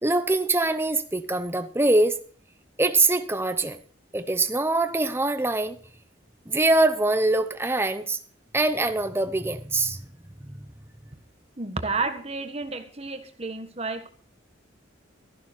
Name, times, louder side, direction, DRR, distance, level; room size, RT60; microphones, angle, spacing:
voice 1, 0.0-2.2 2.8-3.8 4.1-5.8 6.5-8.2 8.5-10.0 10.4-10.5, right 2 dB, 15° right, 10 dB, 0.9 m, -23 dB
voice 2, 11.6-14.1, right 3 dB, 30° right, 7 dB, 1.6 m, -31 dB
14.0 x 11.5 x 4.5 m, 0.42 s
head